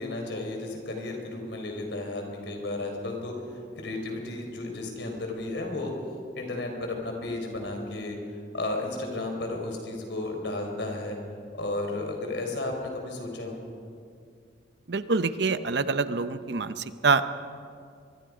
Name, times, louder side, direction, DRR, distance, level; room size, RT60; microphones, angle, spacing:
voice 1, 0.0-3.4 3.8-5.9 6.3-8.2 8.5-11.2 11.6-13.6, left 2 dB, 70° left, 3 dB, 4.4 m, -33 dB
voice 2, 14.9-17.5, right 4 dB, 65° right, 11 dB, 0.8 m, -26 dB
25.0 x 22.0 x 5.1 m, 2.3 s
head